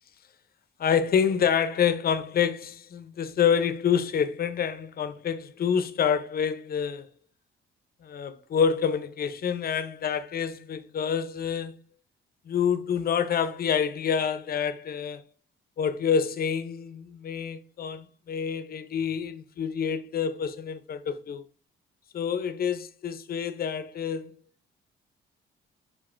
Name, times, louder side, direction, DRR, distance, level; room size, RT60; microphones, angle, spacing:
voice 1, 0.8-7.1 8.0-11.7 12.5-15.2 15.8-21.4 22.1-24.3, left 7 dB, 50° left, 0.6 m, -27 dB
7.2 x 2.6 x 2.5 m
cardioid pair, 90°, 20 cm